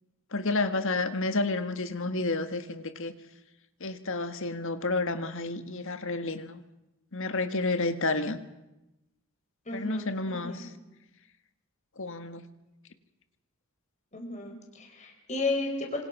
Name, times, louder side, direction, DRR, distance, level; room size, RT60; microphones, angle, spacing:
voice 1, 0.3-3.1 3.8-6.6 7.1-8.4 9.7-10.7 12.0-12.4, left 2 dB, 65° left, 9 dB, 1.8 m, -30 dB
voice 2, 9.6-10.7 14.1-16.0, left 2 dB, 35° left, 2 dB, 5.0 m, -33 dB
26.5 x 26.5 x 6.1 m, 0.96 s
head